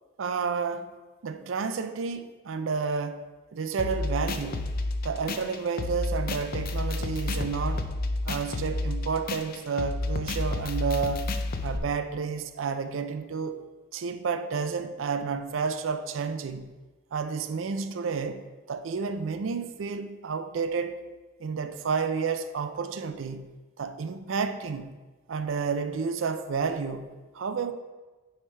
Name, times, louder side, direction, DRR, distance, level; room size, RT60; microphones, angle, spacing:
voice 1, 0.2-1.0 1.2-3.3 3.5-4.7 5.0-7.9 8.2-11.3 11.6-13.6 13.9-16.7 17.1-21.0 21.4-23.5 23.8-25.0 25.3-27.7, right 5 dB, 90° right, 0.5 m, -31 dB
sound 1, 3.8-11.8, left 2 dB, 50° left, 0.4 m, -31 dB
9.7 x 3.3 x 4.4 m
head